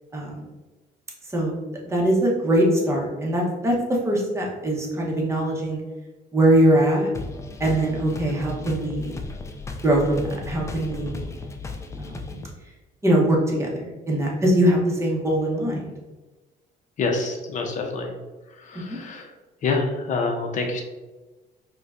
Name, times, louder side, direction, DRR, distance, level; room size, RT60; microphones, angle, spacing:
voice 1, 1.8-3.7 4.0-5.8 6.3-7.1 7.6-9.1 9.8-11.2 12.0-12.4 13.0-15.9, right 1 dB, 15° right, -2 dB, 0.9 m, -22 dB
sound 1, 7.1-12.5, left 3 dB, 15° left, 0.3 m, -35 dB
voice 2, 17.0-18.1 18.6-19.3 19.6-20.8, left 3 dB, 45° left, 3 dB, 0.6 m, -26 dB
4.3 x 2.2 x 2.5 m, 1.2 s
cardioid pair, 110°, 17 cm